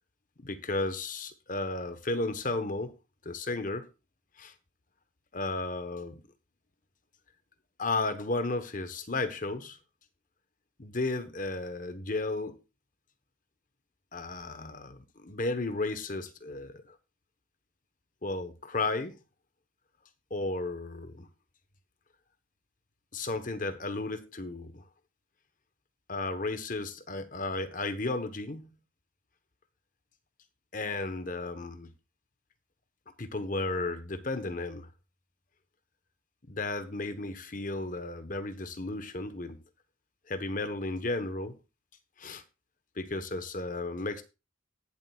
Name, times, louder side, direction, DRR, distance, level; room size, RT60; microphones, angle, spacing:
voice 1, 0.4-2.9 3.2-3.9 4.4-4.5 5.3-6.2 7.8-9.8 10.8-12.6 14.1-16.9 18.2-19.2 20.3-21.3 23.1-24.8 26.1-28.8 30.7-31.9 33.2-34.9 36.5-39.6 40.3-41.6 42.2-42.4 43.0-44.2, left 2 dB, 40° left, 1.1 m, -34 dB
18.5 x 7.7 x 2.4 m
head